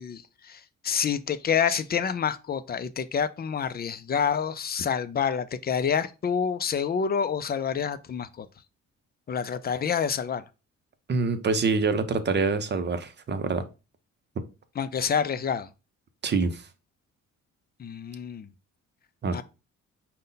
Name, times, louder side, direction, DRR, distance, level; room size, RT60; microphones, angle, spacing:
voice 1, 0.0-8.5 9.3-10.4 14.8-15.7 17.8-18.5 19.3-19.4, left 7 dB, 30° left, 0.4 m, -28 dB
voice 2, 11.1-13.6 14.4-14.5 16.2-16.6 19.2-19.4, right 4 dB, 35° right, 0.7 m, -26 dB
5.2 x 2.2 x 3.9 m
cardioid pair, 90°, 30 cm